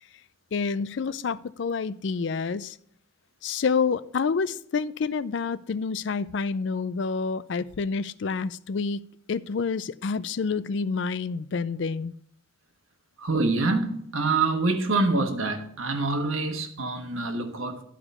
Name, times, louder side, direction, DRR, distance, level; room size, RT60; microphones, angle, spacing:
voice 1, 0.5-2.8 3.4-12.1, left 5 dB, 60° left, 0.4 m, -28 dB
voice 2, 13.2-17.8, right 3 dB, 85° right, 1.3 m, -26 dB
11.5 x 5.0 x 5.4 m
head